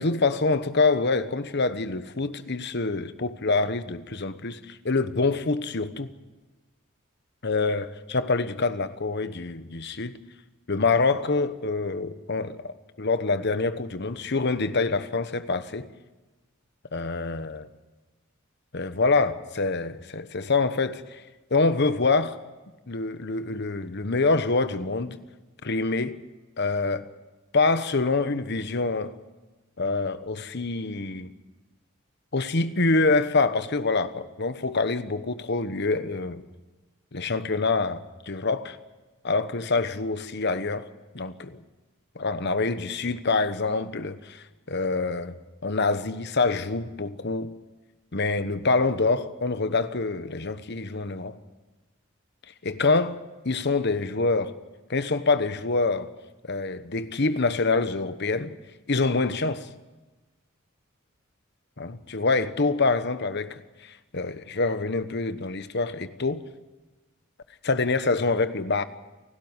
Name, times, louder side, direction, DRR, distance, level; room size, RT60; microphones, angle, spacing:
voice 1, 0.0-6.1 7.4-10.1 10.7-15.9 16.9-17.7 18.7-21.2 21.5-22.4 22.9-25.2 25.6-26.2 26.6-27.0 27.5-29.1 29.8-31.3 32.3-36.4 37.1-38.8 39.2-40.9 41.1-41.6 42.1-45.4 45.6-47.5 48.1-51.4 52.6-53.2 53.4-54.6 54.9-56.1 56.5-58.5 58.9-59.7 61.8-66.4 67.6-68.8, left 3 dB, 55° left, 1.2 m, -26 dB
29.0 x 12.5 x 9.8 m
head